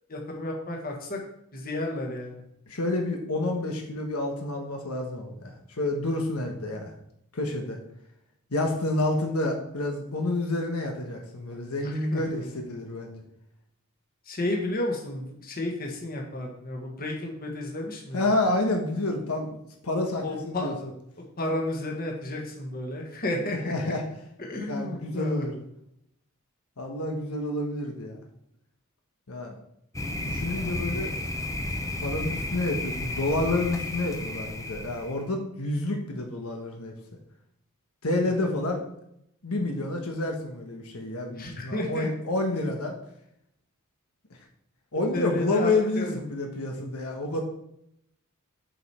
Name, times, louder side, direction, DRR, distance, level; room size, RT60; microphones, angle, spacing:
voice 1, 0.1-1.2 1.5-2.4 11.8-12.5 14.2-18.2 20.2-20.9 21.2-23.9 24.4-25.5 30.5-30.8 38.4-38.8 41.3-42.1 42.6-42.7 45.1-46.2, left 1 dB, 45° left, 1 dB, 1.6 m, -32 dB
voice 2, 2.7-6.9 7.3-7.8 8.5-13.2 18.1-20.7 23.7-24.0 24.7-25.6 26.8-28.2 29.3-29.5 30.2-31.1 32.0-36.9 38.0-38.8 39.4-42.9 44.9-47.4, left 2 dB, 85° left, 2 dB, 1.3 m, -29 dB
Thunder, 29.9-35.2, left 1 dB, 15° left, 0.7 m, -32 dB
7.8 x 5.1 x 4.4 m, 0.76 s
head